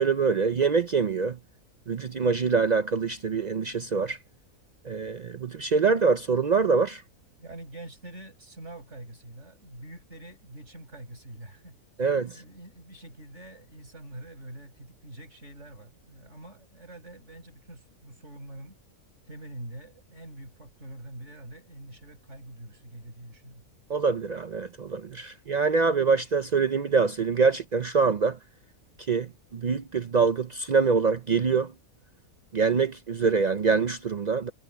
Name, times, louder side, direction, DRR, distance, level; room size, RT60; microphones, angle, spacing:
voice 1, 0.0-1.4 1.9-4.2 4.8-7.0 12.0-12.4 23.9-28.4 29.1-31.7 32.5-34.5, right 5 dB, 75° right, 0.4 m, -24 dB
voice 2, 7.4-18.8 19.3-23.6, right 1 dB, 50° right, 8.0 m, -45 dB
omnidirectional pair, 1.6 m